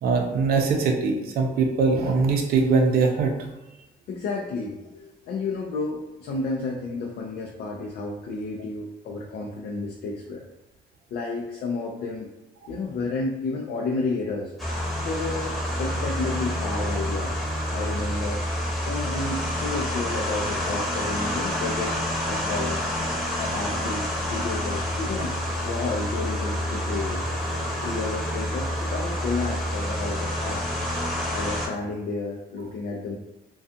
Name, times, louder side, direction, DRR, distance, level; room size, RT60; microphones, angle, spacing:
voice 1, 0.0-3.3, right 4 dB, 60° right, 3 dB, 0.6 m, -22 dB
voice 2, 4.1-10.5 11.1-12.3 12.7-14.5 15.0-17.3 17.7-18.4 18.9-22.0 22.3-22.8 23.4-25.4 25.6-27.2 27.8-30.7 31.3-33.2, left 3 dB, 65° left, -1 dB, 0.5 m, -31 dB
sound 1, 14.6-31.7, left 1 dB, ahead, 0.9 m, -28 dB
2.4 x 2.3 x 2.6 m, 1.0 s
cardioid pair, 95°, 17 cm